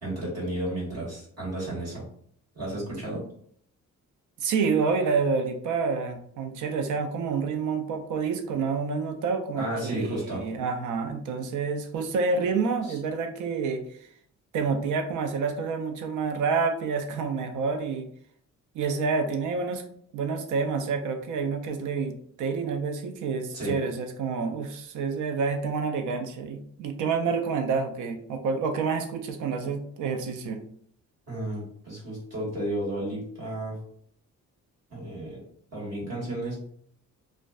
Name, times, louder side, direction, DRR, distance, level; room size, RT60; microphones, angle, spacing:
voice 1, 0.0-2.0 2.5-3.2 9.5-10.4 12.8-13.0 23.5-23.8 31.3-33.8 34.9-35.4 35.7-36.6, right 1 dB, 55° right, -6 dB, 1.5 m, -32 dB
voice 2, 4.4-13.8 14.5-18.1 18.7-19.8 20.1-30.6, right 5 dB, 75° right, 6 dB, 0.5 m, -28 dB
2.4 x 2.2 x 2.3 m, 0.63 s
cardioid pair, 95°, 31 cm